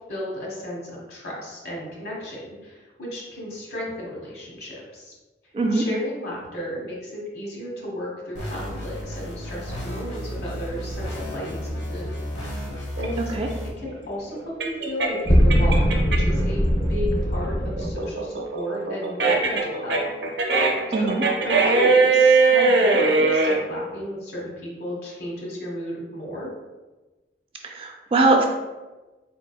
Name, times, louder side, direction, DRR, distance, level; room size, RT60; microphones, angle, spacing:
voice 1, 0.1-5.1 5.7-12.1 13.0-13.2 13.8-20.0 20.6-21.1 21.4-26.5, equal, 60° left, -3 dB, 1.3 m, -33 dB
sound 1, 8.4-13.7, equal, 85° left, 1.0 m, -33 dB
sound 2, 10.9-12.3 15.2-17.9, equal, 30° left, 0.7 m, -21 dB
sound 3, 13.0-16.4 16.8-23.6, right 3 dB, 70° right, 0.6 m, -20 dB
voice 2, 20.9-21.2 27.6-28.4, right 3 dB, 30° right, 2 dB, 0.3 m, -21 dB
4.1 x 3.8 x 2.3 m, 1.2 s
head